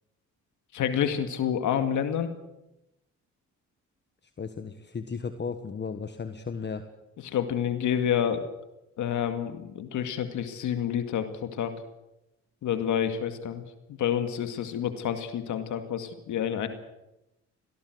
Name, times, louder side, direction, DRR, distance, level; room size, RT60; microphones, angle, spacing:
voice 1, 0.7-2.3 7.2-8.5 9.0-11.7 12.6-13.6 13.9-16.7, left 9 dB, 75° left, 8 dB, 2.2 m, -28 dB
voice 2, 4.2-6.8, left 5 dB, 35° left, 9 dB, 1.6 m, -35 dB
24.0 x 18.0 x 8.0 m, 0.92 s
cardioid pair, 90°, 30 cm